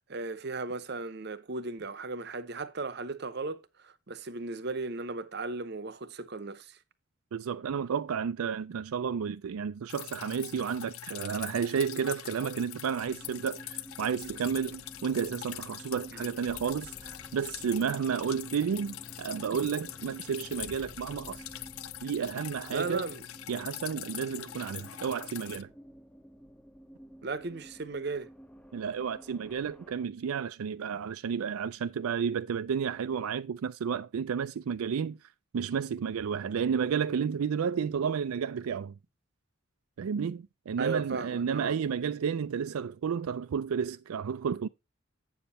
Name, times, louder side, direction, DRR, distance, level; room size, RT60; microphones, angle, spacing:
voice 1, 0.1-6.8 16.2-16.3 22.7-23.3 27.2-28.3 40.8-41.8, right 3 dB, 50° right, 0.8 m, -36 dB
voice 2, 7.3-21.4 22.0-23.1 23.5-25.7 28.7-35.2 35.5-38.9 40.0-44.7, right 7 dB, 85° right, 0.4 m, -32 dB
Drip, 9.9-25.6, left 13 dB, 80° left, 0.5 m, -43 dB
sound 1, 13.0-30.1, equal, 5° left, 0.5 m, -52 dB
7.9 x 7.2 x 4.1 m
head